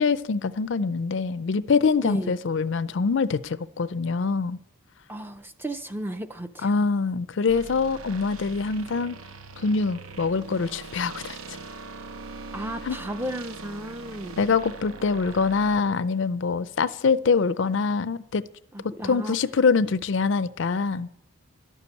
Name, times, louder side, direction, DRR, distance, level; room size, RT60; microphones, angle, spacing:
voice 1, 0.0-4.6 6.6-9.2 9.6-11.4 12.9-13.0 14.4-18.4 19.0-21.1, left 4 dB, 60° left, 0.4 m, -24 dB
voice 2, 2.0-2.3 5.1-6.7 12.5-14.4 18.7-19.4, right 1 dB, 10° right, 0.4 m, -34 dB
sound 1, 7.5-15.8, right 3 dB, 80° right, 0.8 m, -41 dB
12.0 x 6.9 x 8.3 m
head